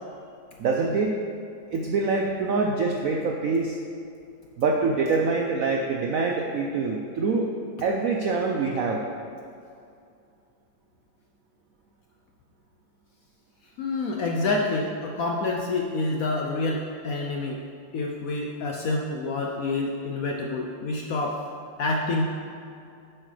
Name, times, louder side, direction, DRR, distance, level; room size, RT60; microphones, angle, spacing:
voice 1, 0.6-1.1 1.7-3.8 4.6-7.5 7.8-9.0, right 4 dB, 75° right, 1 dB, 0.7 m, -25 dB
voice 2, 13.8-17.6 17.9-21.4 21.8-22.3, left 2 dB, 70° left, 0 dB, 0.8 m, -27 dB
9.4 x 7.5 x 3.3 m, 2.5 s
omnidirectional pair, 2.1 m